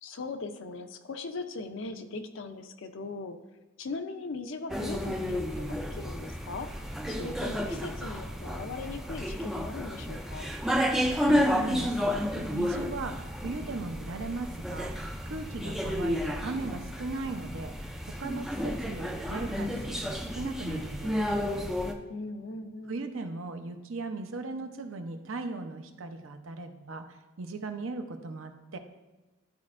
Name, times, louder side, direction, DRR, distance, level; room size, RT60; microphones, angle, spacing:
voice 1, 0.0-3.4 3.8-6.7 7.1-10.5 22.1-23.0, left 3 dB, 60° left, 8 dB, 0.5 m, -39 dB
sound 1, 4.7-21.9, equal, ahead, 0.3 m, -31 dB
voice 2, 11.2-21.2 22.9-28.8, right 3 dB, 65° right, 6 dB, 0.7 m, -38 dB
12.0 x 4.3 x 2.5 m, 1.1 s
head